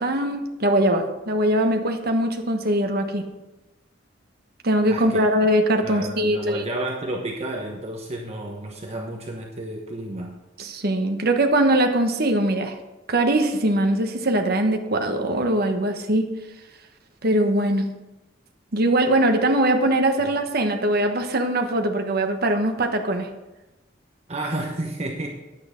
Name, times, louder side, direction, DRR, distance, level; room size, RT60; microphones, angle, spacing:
voice 1, 0.0-3.2 4.6-6.6 10.6-12.8 13.1-16.3 17.2-17.9 18.7-23.3, right 1 dB, 55° right, 4 dB, 1.2 m, -21 dB
voice 2, 4.9-5.2 5.8-10.3 24.3-25.3, right 1 dB, 35° right, 0 dB, 1.0 m, -31 dB
10.5 x 8.7 x 5.1 m, 1.0 s
head